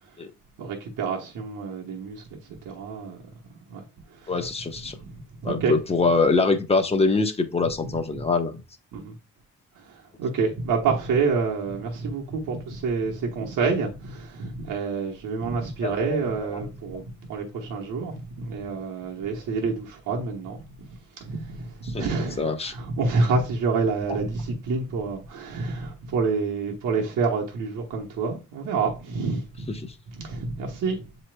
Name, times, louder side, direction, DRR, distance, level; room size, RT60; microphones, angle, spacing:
voice 1, 0.6-3.2 3.7-3.8 4.1-4.5 4.8-5.8 7.6-8.0 8.9-9.1 9.8-20.9 21.2-29.8 30.1-31.0, right 4 dB, 70° right, 1.2 m, -28 dB
voice 2, 4.3-5.0 5.4-8.6 15.8-16.6 21.9-22.1 22.4-22.7, left 3 dB, 20° left, 1.0 m, -24 dB
7.3 x 3.1 x 2.3 m
supercardioid pair, 60°, 33 cm